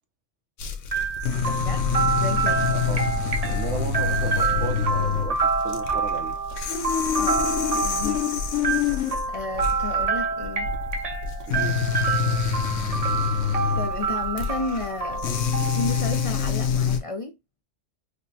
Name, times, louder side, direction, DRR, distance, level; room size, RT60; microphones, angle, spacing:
sound 1, 0.6-17.0, left 7 dB, 90° left, 1.0 m, -26 dB
sound 2, 0.9-16.7, right 5 dB, 45° right, 0.6 m, -28 dB
voice 1, 1.4-2.7 7.2-8.3 9.3-10.7 13.7-15.3 15.6-17.3, left 3 dB, 45° left, 0.4 m, -33 dB
voice 2, 2.7-3.0 3.4-6.3 11.5-11.8, right 5 dB, 75° right, 1.1 m, -35 dB
5.1 x 2.1 x 2.7 m
omnidirectional pair, 1.2 m